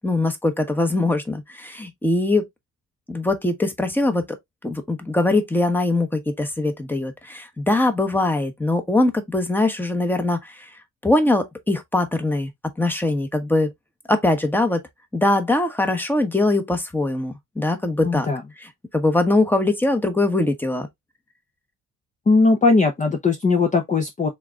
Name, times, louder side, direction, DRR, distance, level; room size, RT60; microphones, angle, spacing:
voice 1, 0.0-2.5 3.1-4.3 4.6-10.7 11.0-12.5 12.8-13.7 14.1-14.8 15.1-18.3 18.6-20.9, left 2 dB, 5° left, 1.1 m, -22 dB
voice 2, 18.0-18.4 22.3-24.3, left 3 dB, 25° left, 0.8 m, -19 dB
4.5 x 3.7 x 2.4 m
cardioid pair, 90°, 30 cm